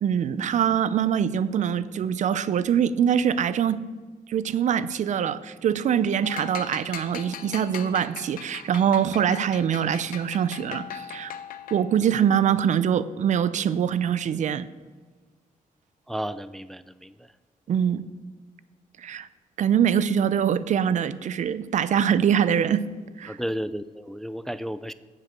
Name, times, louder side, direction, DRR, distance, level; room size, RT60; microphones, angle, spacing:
voice 1, 0.0-3.8 4.3-11.3 11.7-14.7 17.7-18.1 19.0-19.3 19.6-22.8 23.2-23.4, right 8 dB, 60° right, 16 dB, 0.5 m, -23 dB
sound 1, 6.2-12.0, left 9 dB, 85° left, 0.7 m, -40 dB
voice 2, 16.1-17.3 23.3-24.9, equal, 5° left, 14 dB, 0.3 m, -33 dB
8.1 x 7.5 x 6.6 m, 1.4 s
cardioid pair, 105°, 14 cm